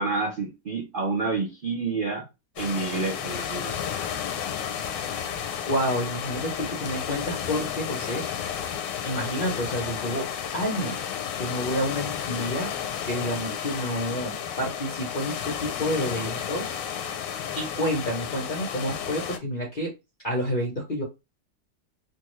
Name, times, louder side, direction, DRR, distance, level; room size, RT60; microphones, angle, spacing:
voice 1, 0.0-2.2 2.6-3.7, right 4 dB, 60° right, 0.5 m, -28 dB
sound 1, 2.6-19.4, left 8 dB, 85° left, 1.3 m, -32 dB
voice 2, 5.6-8.2 9.0-10.3 10.5-11.0 11.4-12.7 13.0-16.7 17.6-19.9 20.2-21.0, equal, 50° left, 0.6 m, -29 dB
3.4 x 2.2 x 3.1 m
omnidirectional pair, 1.9 m